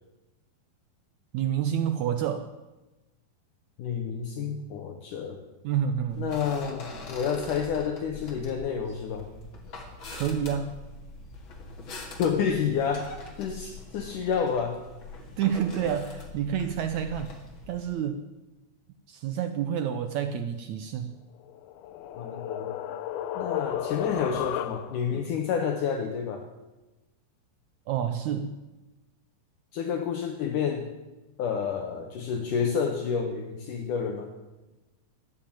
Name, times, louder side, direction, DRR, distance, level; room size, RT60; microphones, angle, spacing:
voice 1, 1.3-2.5 5.6-6.3 10.1-10.8 15.4-17.3 17.7-18.2 19.1-21.1 25.1-25.2 27.9-28.5, right 9 dB, 90° right, 9 dB, 1.6 m, -29 dB
voice 2, 3.8-5.4 6.2-9.3 12.2-14.8 22.2-22.8 23.4-26.5 29.7-30.9 31.4-34.3, left 7 dB, 65° left, 4 dB, 2.4 m, -29 dB
sound 1, 6.1-17.8, left 3 dB, 40° left, 2.4 m, -43 dB
sound 2, 21.4-25.2, left 11 dB, 85° left, 2.7 m, -34 dB
13.5 x 11.0 x 8.8 m, 1.1 s
omnidirectional pair, 4.3 m